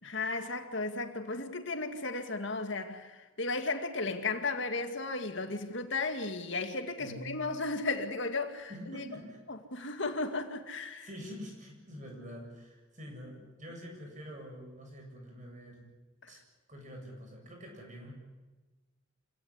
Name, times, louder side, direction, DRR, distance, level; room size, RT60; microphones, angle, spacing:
voice 1, 0.0-9.1 9.7-11.1 16.2-16.3, left 3 dB, 60° left, 2.2 m, -35 dB
voice 2, 7.0-7.4 8.7-9.4 11.0-15.9 16.3-16.4 16.7-18.1, equal, 35° right, 7.5 m, -46 dB
27.0 x 18.0 x 9.9 m
head